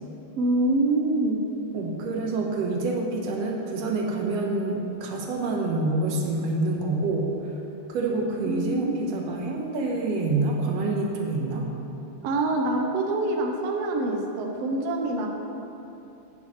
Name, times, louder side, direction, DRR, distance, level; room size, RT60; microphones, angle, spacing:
voice 1, 0.4-1.4 8.4-9.0 12.2-15.3, right 2 dB, 85° right, 1 dB, 1.4 m, -25 dB
voice 2, 1.7-7.3 7.9-11.7, right 2 dB, 65° right, 0 dB, 1.8 m, -27 dB
11.5 x 9.2 x 3.1 m, 2.8 s
omnidirectional pair, 3.8 m